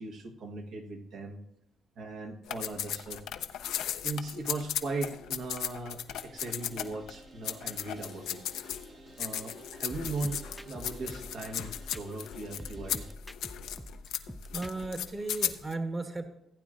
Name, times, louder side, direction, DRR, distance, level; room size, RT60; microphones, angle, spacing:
voice 1, 0.0-1.4 2.0-3.2 4.0-8.4 9.2-13.1, right 3 dB, 75° right, 2 dB, 1.3 m, -38 dB
sound 1, 2.5-7.1 7.4-8.9 9.2-15.7, left 10 dB, 85° left, 0.6 m, -36 dB
sound 2, 6.1-13.1, right 2 dB, 50° right, 1.0 m, -53 dB
sound 3, 9.9-12.3 12.6-15.0, left 1 dB, 5° left, 0.4 m, -44 dB
voice 2, 14.5-16.3, right 2 dB, 25° right, 5 dB, 1.2 m, -35 dB
15.5 x 9.0 x 2.5 m, 0.82 s
cardioid pair, 90°, 0 cm